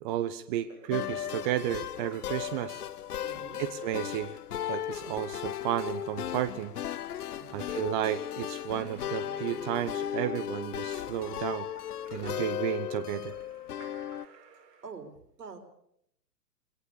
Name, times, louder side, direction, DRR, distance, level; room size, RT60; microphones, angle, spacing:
voice 1, 0.0-2.8 3.6-4.4 4.7-6.7 7.5-11.7 12.1-13.3, right 12 dB, 30° right, 13 dB, 0.9 m, -32 dB
Splash splatter / Drip / Trickle dribble, 0.6-14.9, right 5 dB, 50° right, 4.9 m, -60 dB
sound 1, 0.9-14.2, left 10 dB, 65° left, 0.9 m, -36 dB
voice 2, 3.2-3.6 7.4-7.7 12.2-12.5 14.8-15.6, right 5 dB, 70° right, 4 dB, 4.7 m, -46 dB
21.5 x 18.0 x 6.8 m, 0.72 s
figure-of-eight pair, 120°, 49 cm